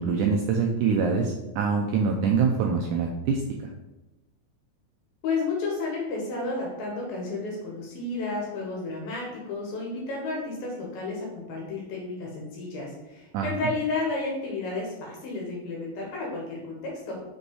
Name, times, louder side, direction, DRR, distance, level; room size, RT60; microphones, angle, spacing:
voice 1, 0.0-3.4 13.3-13.5, right 5 dB, 85° right, 2 dB, 1.8 m, -24 dB
voice 2, 5.2-17.2, left 3 dB, 75° left, -2 dB, 3.2 m, -32 dB
6.4 x 5.3 x 4.8 m, 1.0 s
omnidirectional pair, 4.3 m